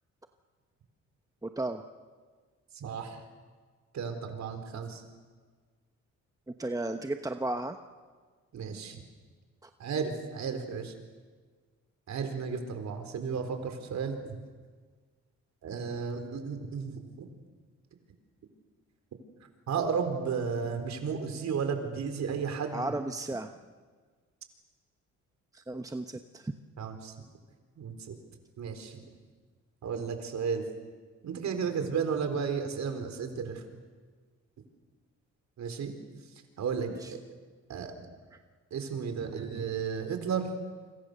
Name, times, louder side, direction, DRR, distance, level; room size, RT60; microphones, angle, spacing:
voice 1, 1.4-1.8 6.6-7.8 9.6-9.7 22.7-23.5 25.5-26.5 36.9-37.1, right 2 dB, 10° right, 6 dB, 1.1 m, -34 dB
voice 2, 2.7-3.2 3.9-5.0 8.5-9.0 9.8-10.9 12.1-14.1 15.6-17.3 19.7-22.9 26.8-27.1 27.8-28.1 28.6-29.0 29.8-30.6 31.2-33.6 35.6-35.9 36.6-37.2 37.7-37.9 38.7-40.5, right 6 dB, 65° right, 6 dB, 4.2 m, -33 dB
28.0 x 25.5 x 6.8 m, 1.5 s
cardioid pair, 90°, 30 cm